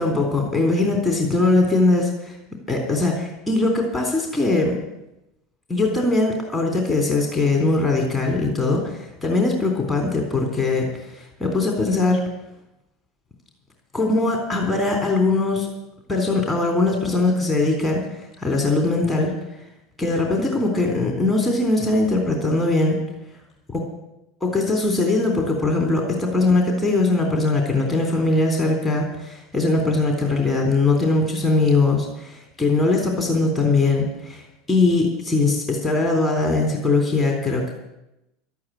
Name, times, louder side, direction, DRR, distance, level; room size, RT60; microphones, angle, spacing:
voice 1, 0.0-2.4 2.7-4.8 5.7-12.3 13.9-15.7 16.1-19.3 20.0-23.0 24.4-37.7, left 3 dB, 15° left, 2 dB, 3.5 m, -21 dB
12.0 x 8.8 x 9.2 m, 0.92 s
hypercardioid pair, 95°, 0 cm